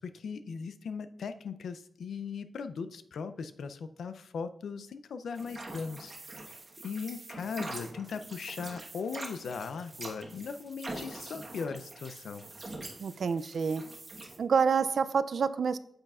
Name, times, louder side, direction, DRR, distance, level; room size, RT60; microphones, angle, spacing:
voice 1, 0.0-6.1 6.8-12.4, left 5 dB, 80° left, 11 dB, 0.4 m, -38 dB
sound 1, 5.3-14.4, right 2 dB, 30° right, 1.2 m, -44 dB
voice 2, 13.0-13.8 14.4-15.8, right 6 dB, 55° right, 14 dB, 0.3 m, -27 dB
8.8 x 7.8 x 2.4 m, 0.73 s
wide cardioid pair, 180°, 0 cm